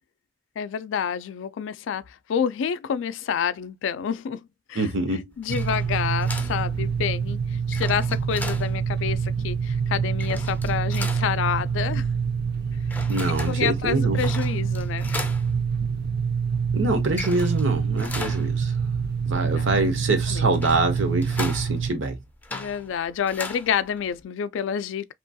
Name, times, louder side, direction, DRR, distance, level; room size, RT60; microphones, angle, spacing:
voice 1, 0.6-4.4 4.7-4.9 5.4-12.1 13.5-15.2 19.3-20.0 20.3-20.5 22.5-25.1, left 7 dB, 80° left, 0.3 m, -28 dB
voice 2, 4.7-5.3 13.1-14.2 16.7-18.8 19.2-22.2, right 2 dB, 85° right, 0.9 m, -25 dB
sound 1, 5.3-24.2, left 2 dB, 10° left, 0.4 m, -39 dB
sound 2, 5.5-21.9, right 6 dB, 55° right, 0.5 m, -26 dB
2.9 x 2.3 x 2.6 m
head